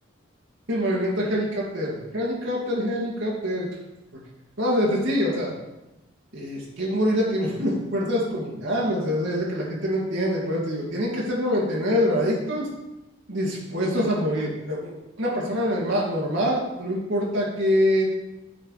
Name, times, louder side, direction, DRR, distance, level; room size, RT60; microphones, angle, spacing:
voice 1, 0.7-3.7 4.6-5.5 6.3-12.6 13.3-14.9 15.2-18.1, equal, 70° right, -5 dB, 2.1 m, -25 dB
9.7 x 4.0 x 4.8 m, 0.95 s
head